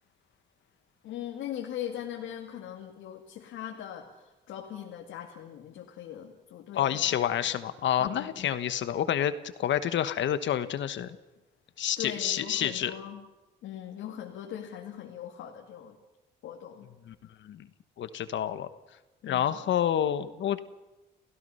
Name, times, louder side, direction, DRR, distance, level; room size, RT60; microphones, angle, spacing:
voice 1, 1.0-7.0 8.0-8.5 12.0-13.2 13.6-16.0 16.4-16.9 19.2-19.6, left 10 dB, 85° left, 0 dB, 2.1 m, -40 dB
voice 2, 6.7-9.3 9.6-11.2 11.8-12.9 17.1-17.2 17.4-17.7 18.0-18.7 19.2-20.6, left 10 dB, 70° left, 12 dB, 1.2 m, -28 dB
29.5 x 16.0 x 5.6 m, 1.1 s
cardioid pair, 90°, 20 cm